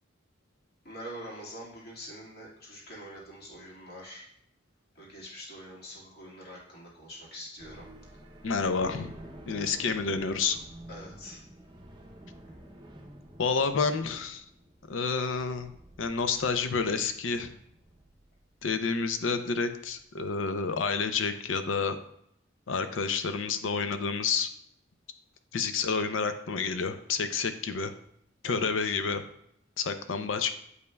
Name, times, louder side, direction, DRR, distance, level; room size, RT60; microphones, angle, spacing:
voice 1, 0.8-4.2 5.0-7.9 10.9-11.4 28.4-28.9, equal, 55° left, -5 dB, 1.9 m, -45 dB
sound 1, 7.6-20.0, right 1 dB, 25° right, 0.6 m, -50 dB
voice 2, 8.4-9.1 9.5-10.6 13.4-14.4 14.8-15.7 16.0-17.5 18.6-22.0 22.7-24.5 25.5-27.9 28.4-29.2 29.8-30.6, left 5 dB, 80° left, 9 dB, 0.5 m, -29 dB
8.0 x 5.2 x 2.3 m, 0.71 s
head